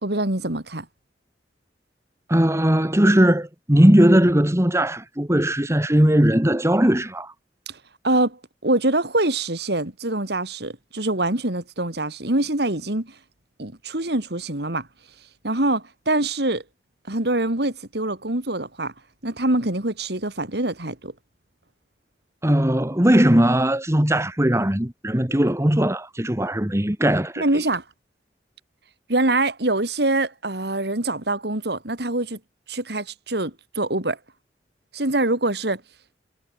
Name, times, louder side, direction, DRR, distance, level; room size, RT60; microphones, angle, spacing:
voice 1, 0.0-0.9 7.7-7.8 8.0-13.1 13.6-14.9 15.4-16.6 17.1-18.9 19.2-21.1 27.4-27.8 29.1-32.4 32.7-34.2 34.9-35.8, right 2 dB, 65° right, 3.3 m, -24 dB
voice 2, 2.3-7.3 22.4-27.4, right 1 dB, 15° right, 1.9 m, -19 dB
head